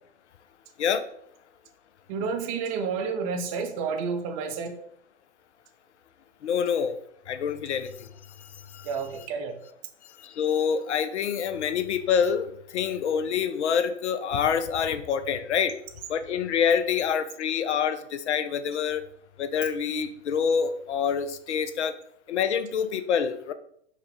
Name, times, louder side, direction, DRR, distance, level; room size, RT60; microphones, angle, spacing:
voice 1, 2.1-4.8 8.8-9.6, right 5 dB, 30° right, 5 dB, 0.5 m, -30 dB
voice 2, 6.4-7.0 7.3-8.1 8.7-8.9 10.2-15.7 16.1-19.1 19.4-21.9 22.3-23.5, left 7 dB, 70° left, 11 dB, 0.5 m, -26 dB
4.7 x 2.2 x 3.3 m, 0.68 s
figure-of-eight pair, 110°, 36 cm